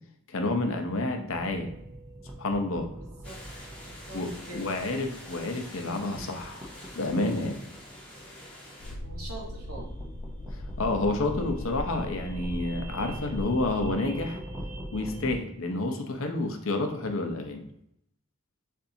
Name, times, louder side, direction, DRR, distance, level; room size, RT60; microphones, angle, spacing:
voice 1, 0.3-1.7 2.4-2.9 4.1-6.6 7.0-7.6 10.8-14.4 14.9-17.7, left 2 dB, 65° left, 5 dB, 0.7 m, -29 dB
sound 1, 1.3-15.4, right 1 dB, 15° right, 0.6 m, -44 dB
voice 2, 3.0-3.4 3.8-4.6 9.0-9.9, right 1 dB, 80° right, -1 dB, 1.4 m, -44 dB
sound 2, 3.2-8.9, left 1 dB, 5° left, 1.3 m, -47 dB
sound 3, 8.8-13.9, left 1 dB, 40° left, 0.3 m, -38 dB
6.9 x 2.6 x 2.7 m, 0.76 s
head